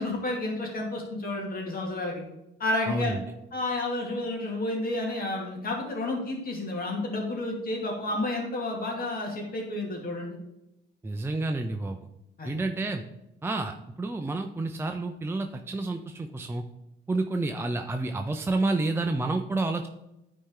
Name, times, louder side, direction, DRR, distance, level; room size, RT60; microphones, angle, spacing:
voice 1, 0.0-2.2 2.6-3.2 3.5-10.4 12.4-12.5, left 2 dB, 50° left, 0 dB, 2.4 m, -31 dB
voice 2, 2.9-3.2 11.0-12.0 12.4-13.0 13.4-16.6 17.1-19.9, right 2 dB, 10° right, 5 dB, 0.5 m, -29 dB
9.9 x 4.3 x 3.8 m, 0.91 s
cardioid pair, 90°, 20 cm